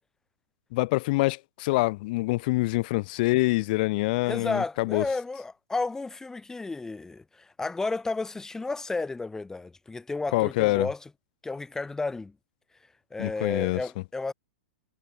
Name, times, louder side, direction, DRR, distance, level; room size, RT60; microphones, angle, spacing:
voice 1, 0.7-5.0 10.3-10.9 13.2-13.8, left 22 dB, 50° left, 0.6 m, -25 dB
voice 2, 4.2-11.1 11.4-12.3 13.1-14.3, left 3 dB, 10° left, 2.4 m, -32 dB
hypercardioid pair, 115°, 6 cm